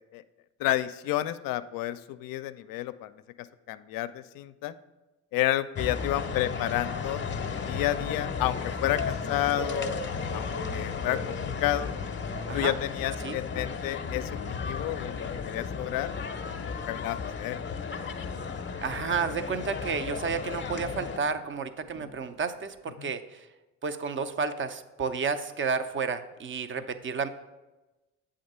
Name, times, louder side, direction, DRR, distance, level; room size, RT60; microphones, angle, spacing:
voice 1, 0.6-3.1 3.7-4.7 5.3-7.2 7.7-11.9 12.5-16.1 16.6-17.6 23.0-23.1, left 14 dB, 60° left, 13 dB, 0.5 m, -31 dB
sound 1, 5.7-21.2, left 6 dB, 30° left, 0.7 m, -34 dB
sound 2, 6.1-10.5, right 1 dB, 55° right, 1.5 m, -47 dB
sound 3, 8.3-13.5 13.8-22.8, right 1 dB, 75° right, 1.3 m, -45 dB
voice 2, 18.8-23.5 23.8-27.3, right 5 dB, 30° right, 11 dB, 0.5 m, -31 dB
7.8 x 3.8 x 5.4 m, 1.1 s
hypercardioid pair, 55°, 38 cm